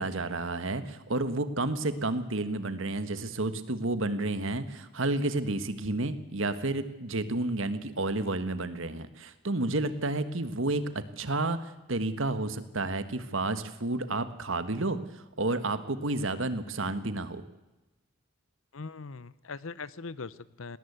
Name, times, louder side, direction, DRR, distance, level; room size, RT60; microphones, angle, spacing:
voice 1, 0.0-10.8 11.2-11.6 11.9-17.4, right 2 dB, 70° right, 11 dB, 1.5 m, -31 dB
voice 2, 18.7-20.8, left 4 dB, 75° left, 18 dB, 0.8 m, -41 dB
19.0 x 19.0 x 8.2 m, 1.0 s
head